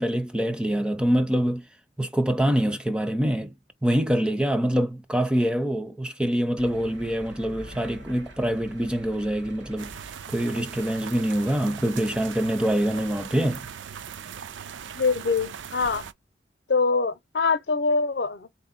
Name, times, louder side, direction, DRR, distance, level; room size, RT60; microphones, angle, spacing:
voice 1, 0.0-1.7 2.0-3.5 3.8-9.9 10.3-13.7, right 1 dB, 5° right, 0.4 m, -25 dB
sound 1, 6.6-10.5 11.2-11.4 11.8-11.9, equal, 75° right, 1.1 m, -45 dB
sound 2, 9.8-16.1, right 7 dB, 90° right, 0.4 m, -39 dB
voice 2, 14.9-16.0 16.7-18.5, left 4 dB, 65° left, 0.6 m, -24 dB
4.2 x 2.8 x 3.9 m
head